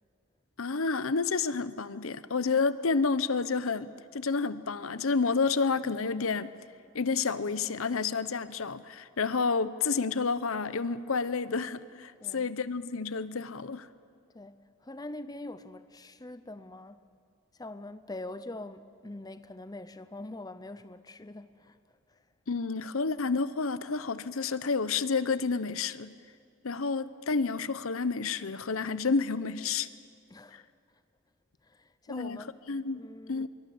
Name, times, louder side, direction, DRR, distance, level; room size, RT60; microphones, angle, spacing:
voice 1, 0.6-6.5 6.9-13.9 22.5-26.1 26.6-29.9 30.5-30.6 32.1-33.5, left 4 dB, 75° left, 0.8 m, -30 dB
voice 2, 12.2-12.5 14.3-17.1 17.5-21.8 22.1-22.2 30.3-30.7 31.6-32.5 33.0-33.5, left 2 dB, 20° left, 0.6 m, -44 dB
24.5 x 23.0 x 7.8 m
head